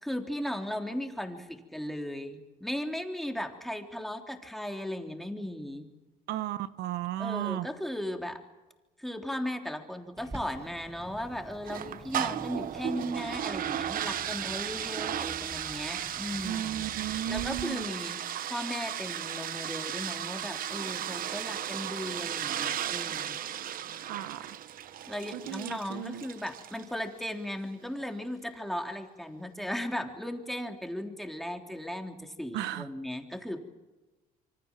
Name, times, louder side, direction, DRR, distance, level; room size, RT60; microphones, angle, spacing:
voice 1, 0.0-5.9 7.2-8.4 9.0-18.2 18.5-23.4 25.1-33.6, left 1 dB, ahead, 3 dB, 3.5 m, -37 dB
voice 2, 6.3-7.7 16.4-17.8 24.1-24.4 25.3-26.2 32.5-32.8, right 13 dB, 85° right, 13 dB, 1.1 m, -34 dB
Bird, 10.2-17.6, right 2 dB, 15° right, 2.0 m, -47 dB
sound 1, 11.7-26.9, right 10 dB, 55° right, 1.1 m, -35 dB
27.0 x 25.0 x 7.5 m, 1.1 s
cardioid pair, 110°, 17 cm